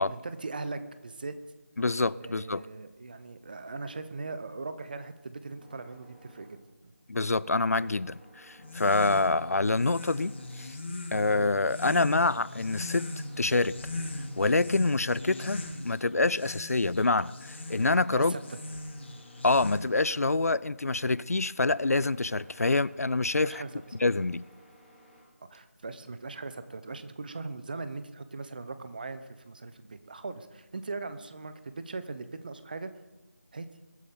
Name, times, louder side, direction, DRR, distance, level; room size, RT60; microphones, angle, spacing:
voice 1, 0.0-1.4 2.2-6.5 18.1-18.6 23.4-23.7 25.5-32.9 33.5-33.7, right 3 dB, 35° right, 0.9 m, -39 dB
voice 2, 1.8-2.6 7.1-10.7 11.1-13.1 13.4-13.7 14.4-18.3 19.4-23.6 24.0-24.4, left 3 dB, 65° left, 0.5 m, -26 dB
sound 1, 5.6-25.2, equal, ahead, 1.8 m, -58 dB
sound 2, 8.6-20.1, left 2 dB, 45° left, 2.4 m, -39 dB
22.0 x 13.0 x 3.9 m
figure-of-eight pair, 165°, 9 cm